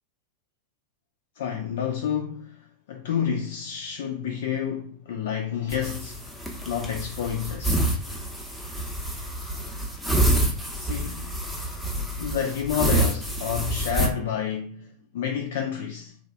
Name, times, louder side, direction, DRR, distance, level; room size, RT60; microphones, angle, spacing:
voice 1, 1.4-6.2 6.7-7.8 10.8-11.3 12.2-16.1, left 8 dB, 55° left, 0.3 m, -29 dB
sound 1, 5.7-14.1, right 1 dB, ahead, 0.7 m, -27 dB
3.2 x 2.3 x 2.3 m
figure-of-eight pair, 90°, 0 cm